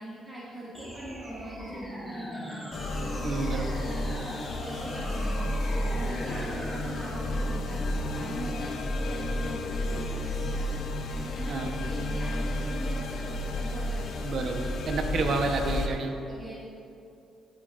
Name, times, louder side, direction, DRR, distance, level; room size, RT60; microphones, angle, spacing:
voice 1, 0.0-2.6 2.9-5.3 5.9-7.8 8.1-10.8 11.1-14.2 16.2-16.6, right 1 dB, 25° right, -7 dB, 2.2 m, -41 dB
sound 1, 0.7-10.7, equal, 10° right, 1.9 m, -41 dB
sound 2, 2.7-15.9, left 1 dB, 65° left, 0.8 m, -32 dB
voice 2, 3.2-3.7 11.5-11.7 14.2-16.1, right 3 dB, 60° right, 3 dB, 1.1 m, -29 dB
15.5 x 7.3 x 2.6 m, 2.7 s
cardioid pair, 90°, 0 cm